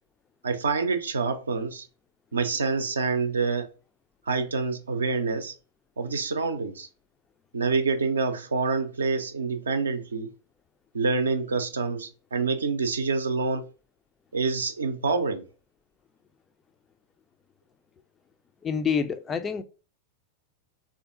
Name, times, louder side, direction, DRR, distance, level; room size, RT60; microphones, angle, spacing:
voice 1, 0.4-1.9 2.3-3.7 4.3-5.5 6.0-6.9 7.5-10.3 10.9-13.7 14.3-15.4, right 4 dB, 70° right, 0.5 m, -27 dB
voice 2, 18.6-19.6, left 6 dB, 20° left, 0.3 m, -27 dB
3.4 x 2.5 x 2.4 m
figure-of-eight pair, 90°, 0 cm